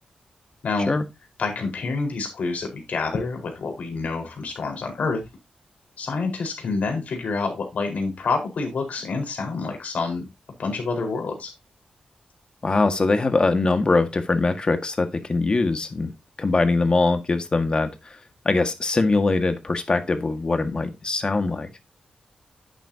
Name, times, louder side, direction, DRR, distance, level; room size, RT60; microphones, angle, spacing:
voice 1, 1.4-5.2 6.0-10.3 10.6-11.5, left 4 dB, 75° left, 3 dB, 4.6 m, -27 dB
voice 2, 12.6-16.1 16.4-17.9 18.5-21.7, left 3 dB, 35° left, 8 dB, 1.8 m, -22 dB
11.0 x 9.0 x 2.8 m, 0.23 s
wide cardioid pair, 100°, 3 cm